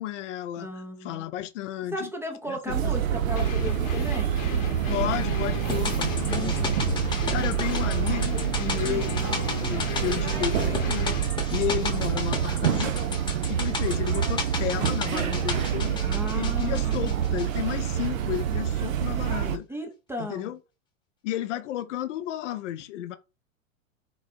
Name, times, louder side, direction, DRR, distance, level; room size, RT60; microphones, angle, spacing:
voice 1, 0.0-2.1 2.5-2.9 4.9-6.7 7.3-12.9 13.5-16.0 16.3-19.7 20.2-20.6 21.2-23.2, left 12 dB, 60° left, 0.6 m, -32 dB
voice 2, 0.6-1.3 1.9-4.4 8.8-9.2 16.0-17.3 19.7-20.5, equal, 5° right, 0.6 m, -35 dB
sound 1, 2.7-19.6, right 10 dB, 70° right, 0.7 m, -27 dB
sound 2, 3.4-11.3, left 6 dB, 40° left, 0.9 m, -35 dB
sound 3, 5.7-18.1 18.3-18.4, left 4 dB, 10° left, 1.0 m, -35 dB
3.9 x 2.5 x 4.1 m
hypercardioid pair, 105°, 41 cm